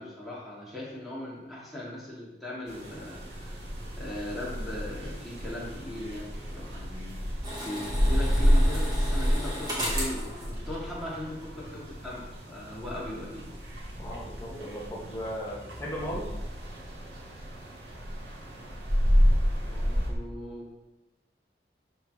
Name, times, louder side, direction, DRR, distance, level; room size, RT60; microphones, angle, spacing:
voice 1, 0.0-3.7 4.0-13.9 19.6-20.7, left 1 dB, ahead, -7 dB, 3.0 m, -39 dB
sound 1, 2.7-20.1, equal, 85° right, 2.3 m, -29 dB
sound 2, 7.4-11.5 11.7-11.8, equal, 25° right, 2.2 m, -36 dB
voice 2, 13.9-16.3, equal, 15° left, -6 dB, 2.2 m, -36 dB
12.0 x 4.7 x 5.2 m, 1.0 s
head